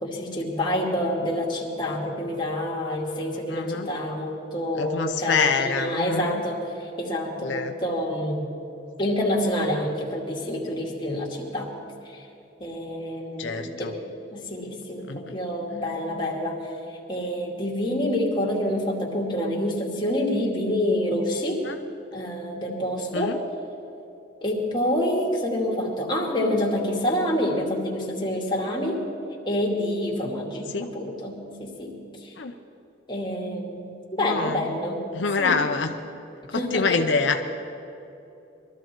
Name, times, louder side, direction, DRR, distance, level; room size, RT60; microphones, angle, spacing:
voice 1, 0.0-8.5 9.0-11.7 12.1-12.2 12.6-13.9 14.3-16.7 17.1-21.7 22.1-23.4 24.4-29.0 29.5-32.3 33.1-35.0 35.4-35.6 36.5-37.0, left 1 dB, 25° left, -3 dB, 2.5 m, -27 dB
voice 2, 3.5-3.9 4.7-6.4 7.4-7.7 13.4-13.9 15.1-15.4 21.6-21.8 23.1-23.4 30.7-30.9 32.4-32.5 34.2-34.8 35.1-36.0 36.5-37.4, left 4 dB, 85° left, 6 dB, 0.7 m, -26 dB
22.5 x 13.5 x 4.6 m, 2.8 s
head